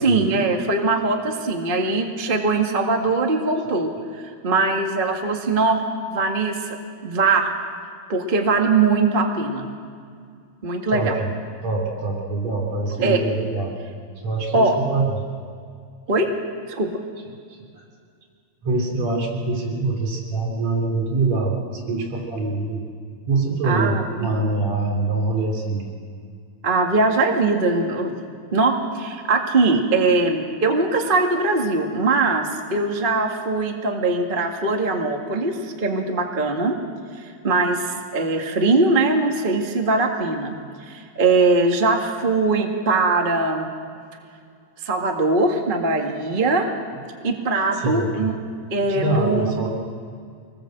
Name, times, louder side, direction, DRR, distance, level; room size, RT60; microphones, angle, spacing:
voice 1, 0.0-3.9 4.2-5.8 6.1-6.8 7.0-7.5 8.1-9.7 10.6-11.2 13.0-13.2 14.5-14.8 16.1-16.3 16.7-16.9 23.6-24.3 26.6-28.1 28.5-36.8 37.4-40.6 40.9-43.7 44.8-46.7 47.2-48.4 48.7-49.5, right 3 dB, 20° right, 2 dB, 1.7 m, -21 dB
voice 2, 10.9-11.3 11.6-13.7 14.2-15.1 18.6-22.8 23.3-25.9 47.7-48.3 48.9-49.7, right 3 dB, 65° right, 1 dB, 4.7 m, -24 dB
25.0 x 20.5 x 7.9 m, 2.2 s
omnidirectional pair, 3.3 m